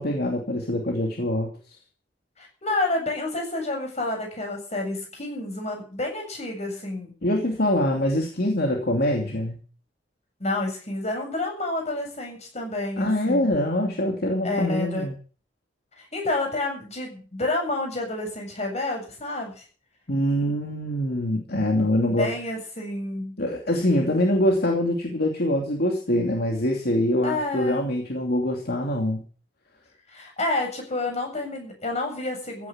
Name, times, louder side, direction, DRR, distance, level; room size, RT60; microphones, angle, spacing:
voice 1, 0.0-1.5 7.2-9.6 13.0-15.1 20.1-22.3 23.4-29.2, left 1 dB, 60° left, 1 dB, 2.7 m, -24 dB
voice 2, 2.4-7.1 10.4-13.5 14.4-15.0 16.0-19.6 22.1-23.4 27.2-27.8 30.1-32.7, left 2 dB, 40° left, 2 dB, 7.6 m, -29 dB
15.5 x 9.7 x 7.4 m, 0.41 s
head